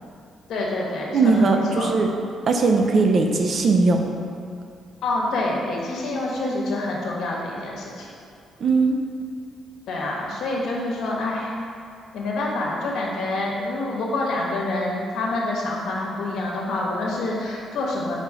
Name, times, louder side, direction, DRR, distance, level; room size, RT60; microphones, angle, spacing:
voice 1, 0.5-1.9 5.0-8.1 9.9-11.5 12.1-18.2, left 2 dB, 75° left, -3 dB, 1.3 m, -27 dB
voice 2, 1.1-2.1 2.5-4.0 8.6-9.0, right 3 dB, 50° right, 3 dB, 0.6 m, -19 dB
5.1 x 4.2 x 4.8 m, 2.4 s
cardioid pair, 90°, 0 cm